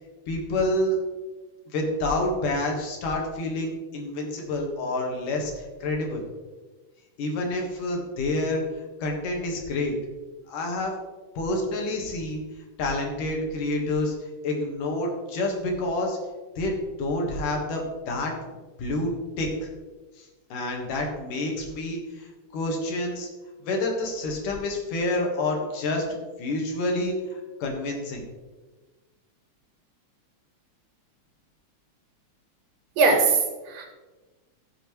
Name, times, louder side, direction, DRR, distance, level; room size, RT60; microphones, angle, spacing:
voice 1, 0.3-1.0 1.7-6.2 7.2-8.6 9.0-9.9 10.5-10.9 11.4-12.4 12.8-14.1 14.4-16.2 16.6-18.3 18.8-19.1 19.4-19.7 20.2-23.3 23.6-28.3, left 2 dB, 75° left, 1 dB, 3.2 m, -28 dB
voice 2, 33.0-33.9, right 4 dB, 90° right, 3 dB, 3.1 m, -21 dB
14.0 x 6.9 x 3.2 m, 1.2 s
omnidirectional pair, 3.8 m